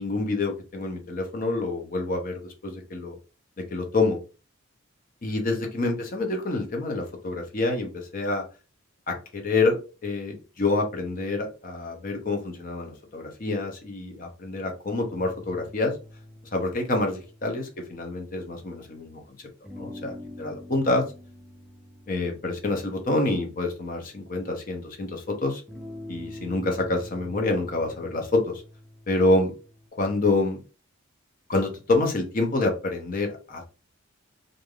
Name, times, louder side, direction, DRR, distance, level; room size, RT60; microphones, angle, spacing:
voice 1, 0.0-3.2 3.7-4.2 5.2-8.4 9.1-15.9 16.5-19.5 19.8-21.0 22.1-25.6 26.1-28.6 29.1-29.5 30.0-30.6 31.5-33.7, left 2 dB, 40° left, 3 dB, 0.7 m, -27 dB
sound 1, 14.9-18.9 19.6-24.7 25.7-29.9, left 1 dB, ahead, 0.6 m, -45 dB
3.2 x 2.5 x 2.3 m, 0.33 s
head